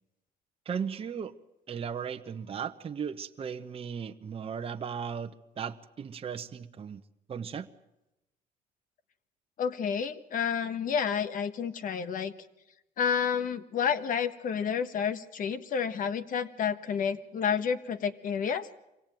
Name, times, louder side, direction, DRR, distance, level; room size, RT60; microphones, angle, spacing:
voice 1, 0.7-1.3 1.7-7.0 7.3-7.7, right 7 dB, 35° right, 7 dB, 1.0 m, -36 dB
voice 2, 9.6-12.3 13.0-18.7, left 7 dB, 55° left, 12 dB, 1.4 m, -30 dB
24.5 x 17.5 x 9.1 m, 0.93 s
cardioid pair, 110°, 17 cm